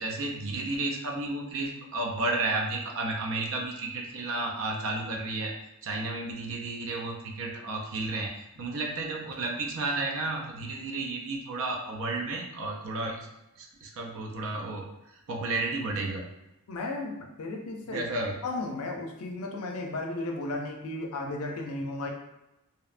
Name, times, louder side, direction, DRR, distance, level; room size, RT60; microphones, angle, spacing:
voice 1, 0.0-5.5 5.8-8.3 8.6-13.3 13.6-14.9 15.3-16.3 17.9-18.4, right 2 dB, 65° right, 1 dB, 0.4 m, -32 dB
voice 2, 16.7-18.0 18.4-22.1, left 2 dB, 75° left, 2 dB, 0.4 m, -34 dB
2.7 x 2.1 x 2.4 m, 0.90 s
head